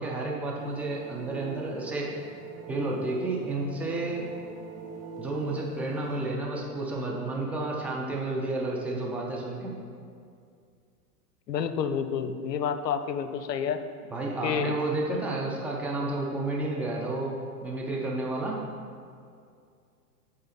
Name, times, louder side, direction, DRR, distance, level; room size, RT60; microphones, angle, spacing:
voice 1, 0.0-2.1 2.7-4.3 5.2-9.7 14.1-18.6, right 2 dB, 5° right, -3 dB, 0.6 m, -31 dB
sound 1, 0.6-6.2, right 4 dB, 85° right, 1.5 m, -43 dB
voice 2, 11.5-13.8 14.4-14.8 15.1-15.2, left 7 dB, 85° left, 10 dB, 0.7 m, -29 dB
8.0 x 3.8 x 5.9 m, 2.3 s
hypercardioid pair, 120°, 48 cm